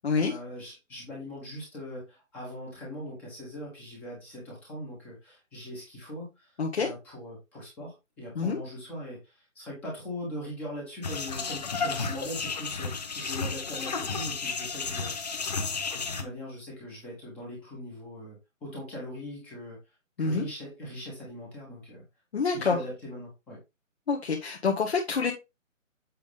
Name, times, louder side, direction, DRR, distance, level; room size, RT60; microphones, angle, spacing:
voice 1, 0.2-6.5 6.7-15.2 15.9-19.8 20.2-22.0 22.4-23.6, left 1 dB, 5° left, -4 dB, 1.1 m, -41 dB
voice 2, 6.6-6.9 8.3-8.6 20.2-20.5 22.3-22.8 24.1-25.3, left 5 dB, 50° left, 0 dB, 1.5 m, -27 dB
sound 1, 11.0-16.2, left 4 dB, 30° left, 1.0 m, -32 dB
7.8 x 5.2 x 3.4 m, 0.24 s
hypercardioid pair, 165°, 39 cm